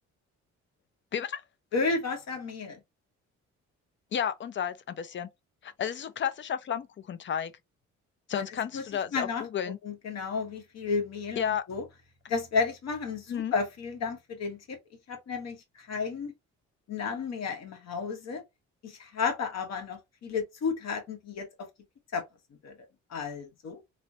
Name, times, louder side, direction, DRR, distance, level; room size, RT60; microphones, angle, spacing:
voice 1, 1.7-2.8 8.3-8.4 8.7-8.8 9.1-9.4 9.8-11.8 12.3-14.8 15.1-16.3 16.9-18.4 18.8-21.5 22.1-22.2 22.6-22.7 23.1-23.8, left 5 dB, 60° left, 1.1 m, -32 dB
voice 2, 4.1-5.3 5.6-7.5 8.3-9.8 11.4-11.6 13.3-13.5, left 8 dB, 40° left, 0.4 m, -32 dB
3.1 x 2.0 x 2.6 m
cardioid pair, 90°, 30 cm